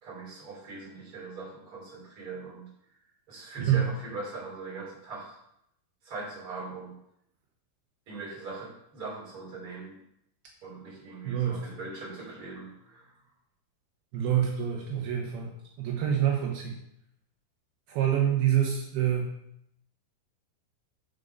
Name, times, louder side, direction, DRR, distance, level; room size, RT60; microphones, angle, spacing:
voice 1, 0.0-2.7 3.3-5.4 6.1-6.9 8.1-9.9 10.6-13.1, right 3 dB, 35° right, -4 dB, 3.9 m, -41 dB
voice 2, 3.6-3.9 11.3-11.6 14.1-15.5 15.8-16.8 17.9-19.3, right 10 dB, 80° right, -1 dB, 3.0 m, -26 dB
7.5 x 6.5 x 5.5 m, 0.76 s
omnidirectional pair, 4.5 m